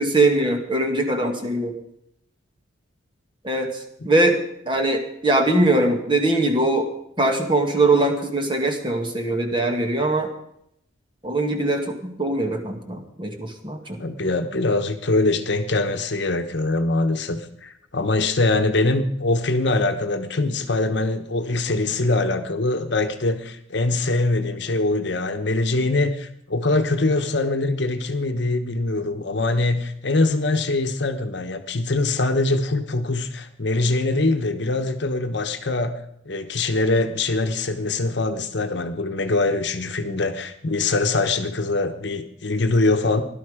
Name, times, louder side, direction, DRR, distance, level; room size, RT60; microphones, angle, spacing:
voice 1, 0.0-1.7 3.4-3.7 4.0-4.4 4.7-6.9 7.2-10.3 11.2-14.0, right 2 dB, 25° right, 4 dB, 1.9 m, -21 dB
voice 2, 14.0-36.0 36.3-43.2, left 2 dB, 60° left, 7 dB, 1.1 m, -23 dB
17.0 x 12.0 x 5.0 m, 0.74 s
head